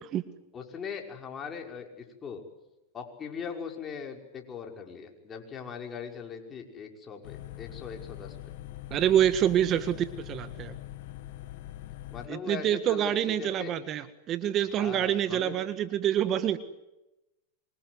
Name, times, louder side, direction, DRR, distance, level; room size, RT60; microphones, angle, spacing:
voice 1, 0.5-2.4 2.9-8.4 12.1-13.7 14.8-15.6, left 6 dB, 25° left, 2 dB, 5.8 m, -40 dB
sound 1, 7.2-12.3, left 14 dB, 65° left, 1.6 m, -43 dB
voice 2, 8.9-10.7 12.3-16.6, right 10 dB, 35° right, 12 dB, 1.6 m, -26 dB
26.5 x 25.0 x 8.2 m, 0.99 s
hypercardioid pair, 120°, 0 cm